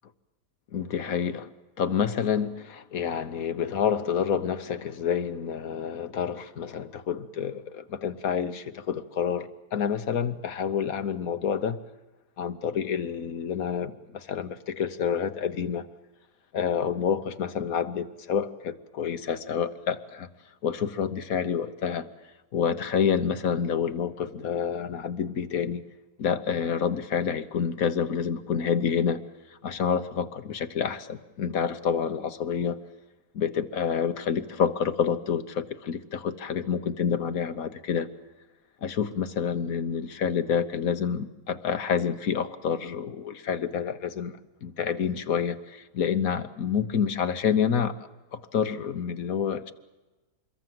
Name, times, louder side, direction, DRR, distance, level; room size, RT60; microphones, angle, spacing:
voice 1, 0.7-1.5 1.8-11.8 12.4-15.9 16.5-20.3 20.6-22.1 22.5-25.8 26.2-29.2 29.6-32.8 33.3-38.1 38.8-47.9 48.3-49.7, left 7 dB, 65° left, 1.5 m, -28 dB
26.5 x 22.5 x 7.7 m
omnidirectional pair, 1.6 m